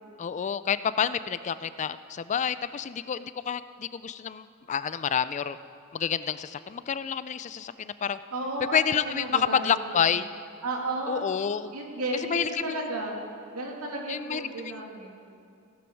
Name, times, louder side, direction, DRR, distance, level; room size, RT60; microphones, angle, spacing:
voice 1, 0.2-5.6 5.9-8.2 8.7-10.3 11.1-11.7 12.3-12.8 14.1-14.8, left 7 dB, 30° left, 14 dB, 0.3 m, -29 dB
voice 2, 8.3-8.8 9.0-10.0 10.6-11.3 11.7-13.2 13.5-15.2, right 2 dB, 80° right, -1 dB, 2.4 m, -33 dB
17.0 x 11.5 x 4.6 m, 2.5 s
head